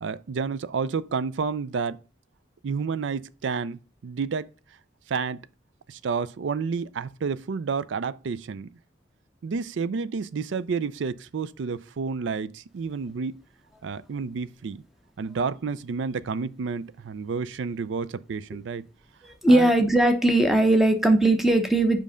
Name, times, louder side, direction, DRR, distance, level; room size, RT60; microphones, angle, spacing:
voice 1, 0.0-2.0 2.6-4.5 5.1-5.5 5.9-8.7 9.4-13.4 13.8-14.8 15.2-18.8 19.5-19.7, right 5 dB, 75° right, 0.4 m, -30 dB
voice 2, 19.2-22.0, right 1 dB, ahead, 0.8 m, -19 dB
5.4 x 5.2 x 5.0 m
head